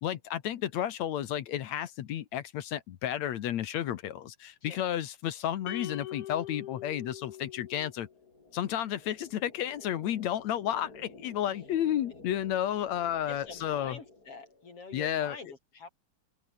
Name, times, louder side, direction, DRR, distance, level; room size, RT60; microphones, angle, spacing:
voice 1, 0.0-8.1 8.5-14.0 14.9-15.5, left 11 dB, 70° left, 2.4 m, -32 dB
sound 1, 5.7-8.1, left 12 dB, 90° left, 2.8 m, -42 dB
sound 2, 6.1-15.0, left 3 dB, 30° left, 5.0 m, -54 dB
voice 2, 13.3-15.9, left 4 dB, 50° left, 6.5 m, -46 dB
omnidirectional pair, 3.4 m